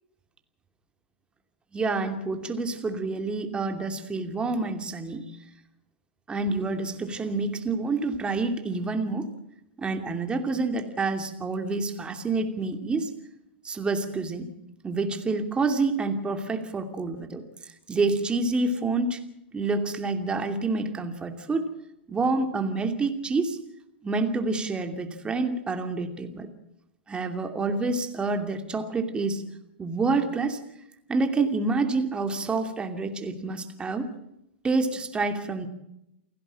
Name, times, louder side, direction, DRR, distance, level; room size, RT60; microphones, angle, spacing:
voice 1, 1.7-5.3 6.3-9.3 9.8-13.1 13.6-14.5 14.8-17.4 17.9-19.2 19.5-21.7 22.1-23.6 24.0-26.5 27.1-29.4 29.8-30.6 31.1-34.1 34.6-35.7, right 3 dB, 15° right, 7 dB, 2.8 m, -28 dB
29.0 x 11.0 x 8.9 m, 0.84 s
hypercardioid pair, 105°, 6 cm